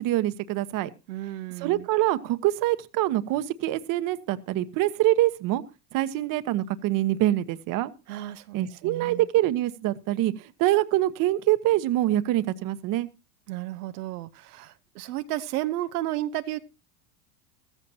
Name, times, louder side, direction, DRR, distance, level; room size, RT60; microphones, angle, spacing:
voice 1, 0.0-0.9 1.6-5.6 5.9-7.9 8.5-13.1, right 15 dB, 45° right, 1.1 m, -25 dB
voice 2, 1.1-1.9 8.1-9.3 13.5-16.6, right 14 dB, 75° right, 0.9 m, -33 dB
15.0 x 14.5 x 2.8 m
hypercardioid pair, 110°, 46 cm